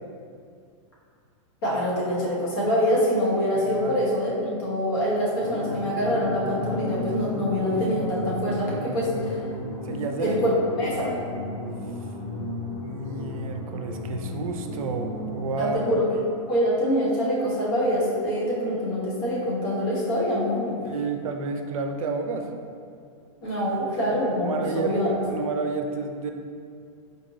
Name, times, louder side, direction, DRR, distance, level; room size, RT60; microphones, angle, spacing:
voice 1, 1.6-9.4 10.2-11.1 15.6-16.0 16.5-20.7 23.4-25.1, equal, 45° left, -6 dB, 1.1 m, -25 dB
sound 1, 5.4-15.8, left 1 dB, 25° left, 0.5 m, -34 dB
voice 2, 9.8-10.4 12.8-15.8 20.8-22.5 24.4-26.3, right 4 dB, 90° right, 5 dB, 0.4 m, -30 dB
4.1 x 2.6 x 3.1 m, 2.3 s
supercardioid pair, 170°, 17 cm